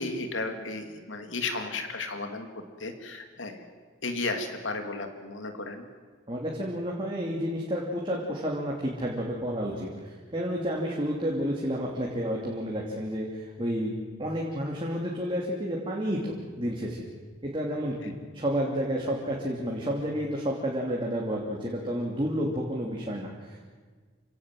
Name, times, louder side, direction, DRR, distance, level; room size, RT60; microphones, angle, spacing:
voice 1, 0.0-3.7 4.0-5.9, left 3 dB, 70° left, 6 dB, 2.8 m, -34 dB
voice 2, 6.3-13.9 14.2-17.0 17.4-23.6, equal, 25° right, -2 dB, 2.9 m, -30 dB
28.5 x 17.5 x 7.8 m, 1.5 s
head